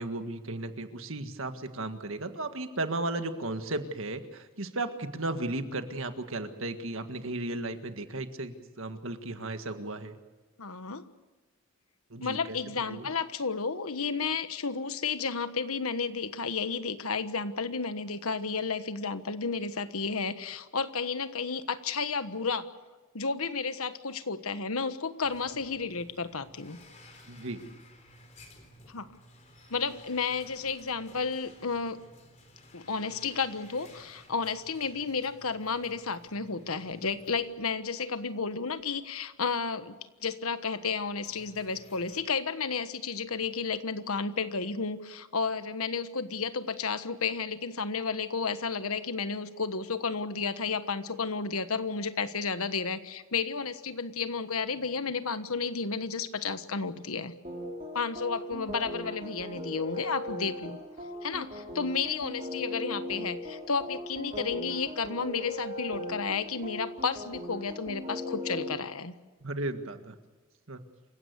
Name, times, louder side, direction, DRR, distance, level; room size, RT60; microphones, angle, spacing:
voice 1, 0.0-10.2 12.1-12.6 12.9-13.1 27.3-27.6 69.4-70.2 70.7-70.8, right 2 dB, 65° right, 8 dB, 1.8 m, -35 dB
voice 2, 10.6-11.0 12.2-22.7 23.1-26.8 28.9-29.1 29.7-32.0 32.7-57.3 57.9-60.8 61.2-69.1, left 5 dB, 80° left, 11 dB, 1.3 m, -32 dB
sound 1, 25.2-38.3 38.7-38.8 39.6-39.7 40.8-42.2, left 1 dB, 35° left, 3.9 m, -56 dB
sound 2, 57.4-68.7, left 1 dB, 35° right, 4.8 m, -39 dB
28.0 x 16.0 x 8.2 m, 1.2 s
head